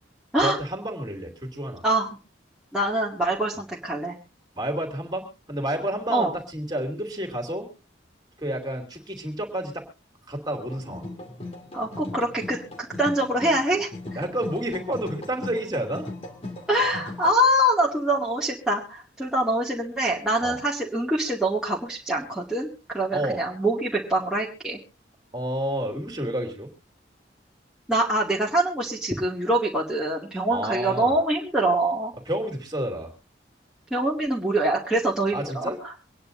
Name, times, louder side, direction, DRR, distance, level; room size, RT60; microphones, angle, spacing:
voice 1, 0.4-1.8 4.6-7.7 8.4-9.8 10.3-11.1 14.1-16.1 20.4-20.6 23.1-23.4 25.3-26.7 30.5-31.1 32.3-33.1 35.3-35.8, right 1 dB, 20° right, 2 dB, 3.1 m, -30 dB
voice 2, 2.7-4.2 6.1-6.3 11.7-13.9 16.7-24.8 27.9-32.1 33.9-35.9, right 1 dB, 5° right, -6 dB, 2.3 m, -24 dB
sound 1, 10.5-17.3, left 2 dB, 30° left, 2.4 m, -38 dB
25.0 x 10.0 x 2.7 m, 0.33 s
head